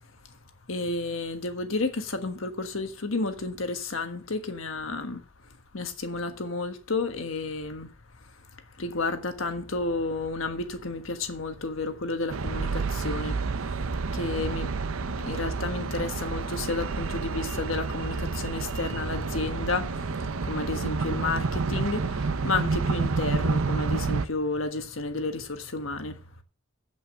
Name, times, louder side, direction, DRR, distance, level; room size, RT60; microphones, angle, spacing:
voice 1, 0.7-5.2 5.7-7.9 8.8-26.2, left 3 dB, 75° left, 1.4 m, -31 dB
sound 1, 12.3-24.3, right 4 dB, 80° right, 0.6 m, -29 dB
8.3 x 8.0 x 6.4 m
head